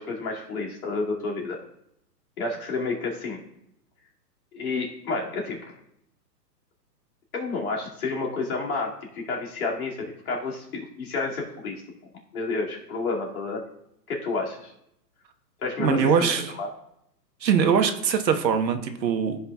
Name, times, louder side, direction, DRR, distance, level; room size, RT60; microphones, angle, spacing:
voice 1, 0.0-1.6 2.4-3.4 4.5-5.6 7.3-11.8 12.3-13.6 14.1-14.7 15.6-16.7, left 3 dB, 55° left, -2 dB, 2.5 m, -30 dB
voice 2, 15.8-16.5 17.4-19.4, right 6 dB, 90° right, 6 dB, 1.3 m, -22 dB
14.0 x 5.4 x 2.4 m, 0.77 s
hypercardioid pair, 165°, 50 cm